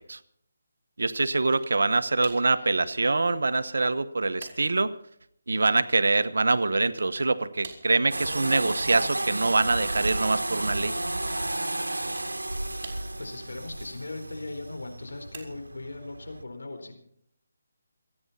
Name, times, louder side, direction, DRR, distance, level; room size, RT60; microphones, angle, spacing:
voice 1, 1.0-4.9 5.5-11.0, right 3 dB, 70° right, 13 dB, 1.0 m, -24 dB
sound 1, 1.5-2.0 2.2-2.5 3.2-4.0 4.4-4.7 6.8-7.3 7.6-7.9 9.3-10.4 11.8-12.4 12.8-13.4 14.8-15.8, right 4 dB, 40° right, 4.0 m, -46 dB
voice 2, 2.4-2.9 13.2-17.0, left 2 dB, 75° left, 4 dB, 4.3 m, -39 dB
sound 2, 8.1-16.4, right 1 dB, 90° right, 1.3 m, -32 dB
27.5 x 9.9 x 4.2 m, 0.70 s
figure-of-eight pair, 155°, 0 cm